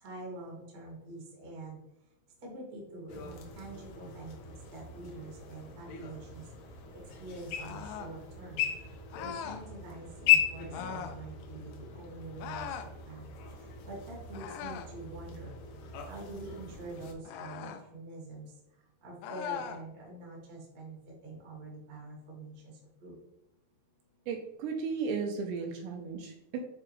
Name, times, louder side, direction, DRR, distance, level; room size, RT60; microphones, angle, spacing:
voice 1, 0.0-1.8 2.4-4.3 4.7-6.4 7.2-8.6 9.2-12.7 13.1-13.2 13.9-15.5 16.1-18.5 19.0-21.0 21.2-22.7 23.0-23.1, right 2 dB, 35° right, -3 dB, 1.5 m, -45 dB
sound 1, 3.1-17.1, left 10 dB, 75° left, 2.7 m, -36 dB
sound 2, 7.6-8.2 9.1-9.6 10.7-11.2 12.4-12.9 14.3-15.0 17.2-17.8 19.2-19.8, left 8 dB, 90° left, 2.2 m, -40 dB
voice 2, 24.3-26.6, right 5 dB, 80° right, 3 dB, 2.7 m, -35 dB
8.9 x 4.3 x 3.1 m, 0.90 s
omnidirectional pair, 5.3 m